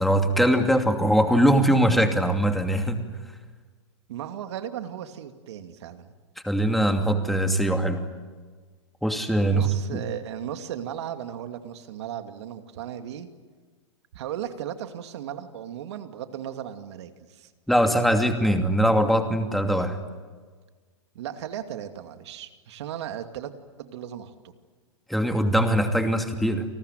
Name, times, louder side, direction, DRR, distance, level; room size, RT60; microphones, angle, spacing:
voice 1, 0.0-3.0 6.4-8.0 9.0-10.0 17.7-20.0 25.1-26.7, right 1 dB, ahead, 5 dB, 2.6 m, -22 dB
voice 2, 4.1-6.1 9.5-13.3 14.1-17.5 21.1-23.5 23.8-24.5, right 10 dB, 65° right, 7 dB, 2.5 m, -36 dB
29.5 x 19.5 x 9.4 m, 1.4 s
hypercardioid pair, 130°, 16 cm